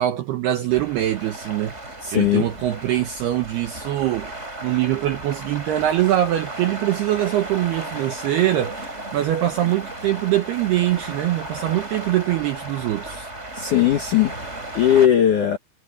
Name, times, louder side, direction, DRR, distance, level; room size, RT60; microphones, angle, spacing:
voice 1, 0.0-13.3, right 13 dB, 75° right, 2.4 m, -23 dB
sound 1, 0.7-15.1, right 2 dB, 15° right, 5.6 m, -35 dB
voice 2, 2.0-2.5 13.5-15.6, left 10 dB, 85° left, 1.7 m, -19 dB
omnidirectional pair, 5.9 m